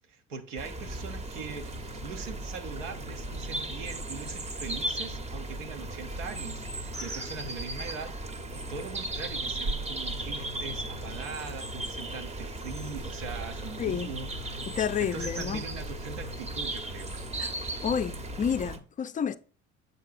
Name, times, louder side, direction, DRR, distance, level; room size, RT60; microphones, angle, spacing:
voice 1, 0.1-14.6 15.0-17.2, right 5 dB, 85° right, 0.9 m, -41 dB
sound 1, 0.6-18.8, right 1 dB, 20° right, 0.8 m, -37 dB
sound 2, 0.8-18.8, right 1 dB, 60° right, 1.0 m, -43 dB
voice 2, 13.8-14.1 14.7-15.6 17.4-17.5 17.8-19.4, left 7 dB, 25° left, 0.4 m, -30 dB
7.4 x 5.3 x 2.5 m
hypercardioid pair, 60°, 35 cm